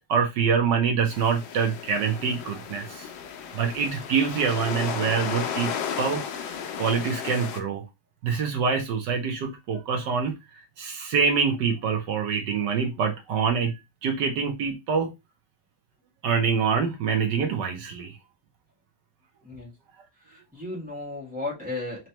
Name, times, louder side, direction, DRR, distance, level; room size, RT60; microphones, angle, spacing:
voice 1, 0.1-3.1 3.5-5.7 6.0-7.8 8.2-10.3 10.8-13.7 14.0-15.1 16.2-18.2, right 6 dB, 70° right, 1.3 m, -25 dB
sound 1, 1.1-7.6, left 7 dB, 75° left, 1.3 m, -34 dB
voice 2, 20.2-22.1, left 2 dB, 5° right, 1.6 m, -34 dB
4.2 x 3.1 x 2.9 m
omnidirectional pair, 2.1 m